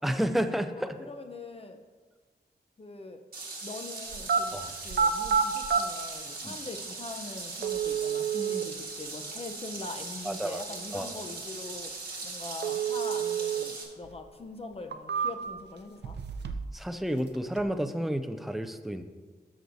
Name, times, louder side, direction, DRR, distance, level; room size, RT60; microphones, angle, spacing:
voice 1, 0.0-1.0 4.5-4.7 6.4-6.6 10.3-10.6 10.9-11.1 16.7-19.0, equal, ahead, 8 dB, 0.4 m, -31 dB
voice 2, 1.0-1.8 2.8-3.2 3.6-4.6 4.8-11.9 12.2-16.2, left 3 dB, 35° left, 5 dB, 0.7 m, -42 dB
sound 1, 3.3-13.8, right 3 dB, 60° right, 1.6 m, -40 dB
sound 2, 4.1-4.4 4.9-5.8 6.8-6.9 7.6-8.6 12.6-13.6 14.0-14.1 14.7-15.6 16.0-16.8 17.0-17.6, right 7 dB, 80° right, 0.5 m, -28 dB
13.0 x 6.2 x 2.7 m, 1.4 s
wide cardioid pair, 130°, 17 cm